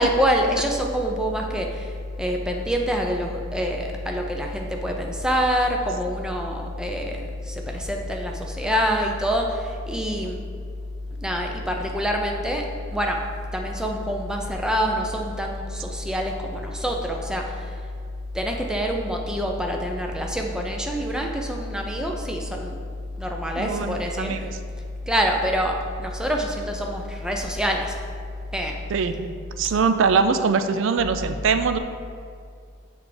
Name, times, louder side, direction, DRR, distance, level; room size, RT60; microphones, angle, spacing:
voice 1, 0.0-10.4 11.2-12.7 12.9-13.2 13.5-17.8 18.3-22.8 23.2-24.5 25.1-28.0 28.5-28.8, equal, 5° right, 1 dB, 0.5 m, -26 dB
voice 2, 23.6-24.4 28.9-29.3 29.6-31.8, right 5 dB, 70° right, 9 dB, 0.4 m, -22 dB
7.1 x 3.4 x 4.9 m, 2.2 s
head